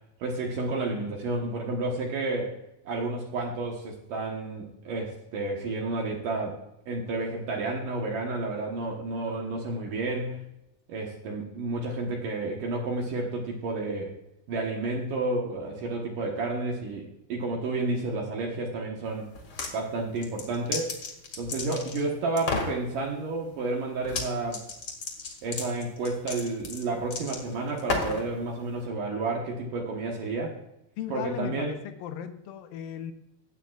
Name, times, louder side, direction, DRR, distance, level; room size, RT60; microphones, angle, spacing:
voice 1, 0.2-2.6 2.9-6.6 6.9-10.5 10.9-14.1 14.5-19.3 19.7-20.9 21.4-24.6 25.4-30.6 31.1-31.7, right 2 dB, 65° right, 0 dB, 2.5 m, -31 dB
sound 1, 19.3-19.7 20.2-22.0 22.4-22.8 24.0-24.3 24.5-28.3, left 3 dB, 45° left, 2.1 m, -32 dB
voice 2, 31.0-33.1, left 9 dB, 75° left, 8 dB, 2.3 m, -36 dB
14.5 x 9.1 x 2.4 m, 0.85 s
omnidirectional pair, 4.5 m